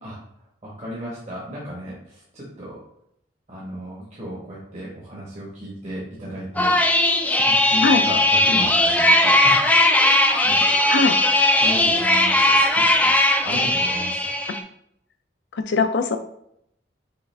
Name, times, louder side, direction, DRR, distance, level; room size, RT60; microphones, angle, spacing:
voice 1, 0.6-2.9 3.5-6.8 7.1-7.2 7.4-9.7 10.4-10.6 11.6-14.4, equal, 40° right, -5 dB, 1.1 m, -34 dB
sound 1, 6.6-14.6, left 1 dB, 10° left, 0.3 m, -18 dB
voice 2, 15.5-16.2, left 4 dB, 70° left, 8 dB, 0.5 m, -20 dB
5.5 x 2.5 x 3.3 m, 0.73 s
head